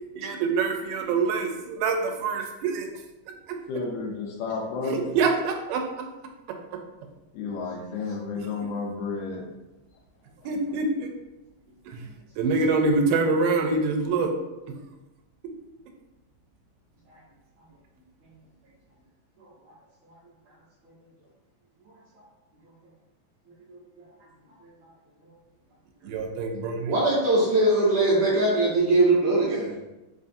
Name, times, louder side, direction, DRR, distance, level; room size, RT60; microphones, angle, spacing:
voice 1, 0.2-2.9 4.8-5.8 8.6-8.7 10.5-11.1 11.9-12.1 12.4-14.3 26.0-26.9, right 4 dB, 85° right, 3 dB, 2.2 m, -25 dB
voice 2, 3.7-5.2 7.3-9.4, left 4 dB, 80° left, -1 dB, 1.7 m, -31 dB
voice 3, 26.9-29.7, right 2 dB, 70° right, -6 dB, 1.6 m, -21 dB
5.1 x 2.4 x 2.6 m, 1.0 s
omnidirectional pair, 3.8 m